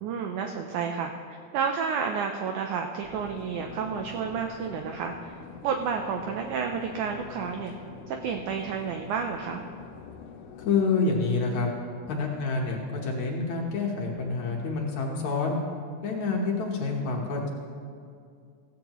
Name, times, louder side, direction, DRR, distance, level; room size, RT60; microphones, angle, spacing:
voice 1, 0.0-5.4 5.6-7.7 8.1-9.6, right 6 dB, 85° right, 4 dB, 1.7 m, -31 dB
sound 1, 3.0-10.9, left 5 dB, 90° left, 2.8 m, -45 dB
voice 2, 10.6-11.7 12.1-15.6 16.0-17.5, left 4 dB, 65° left, -1 dB, 2.0 m, -27 dB
16.0 x 14.5 x 3.0 m, 2.3 s
omnidirectional pair, 4.4 m